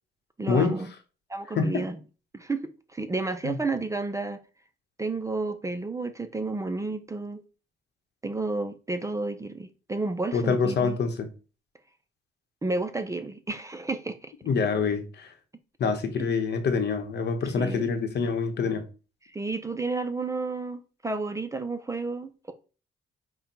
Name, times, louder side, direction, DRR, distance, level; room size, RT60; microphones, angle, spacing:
voice 1, 0.4-0.9 1.3-2.0 2.3-4.4 5.0-7.4 8.2-11.0 12.6-14.3 16.2-16.3 17.6-17.9 19.3-22.5, right 3 dB, 15° right, 0.5 m, -31 dB
voice 2, 10.3-11.3 14.4-15.3 15.8-18.8, left 5 dB, 60° left, 0.9 m, -26 dB
5.2 x 2.2 x 4.4 m
cardioid pair, 90°, 20 cm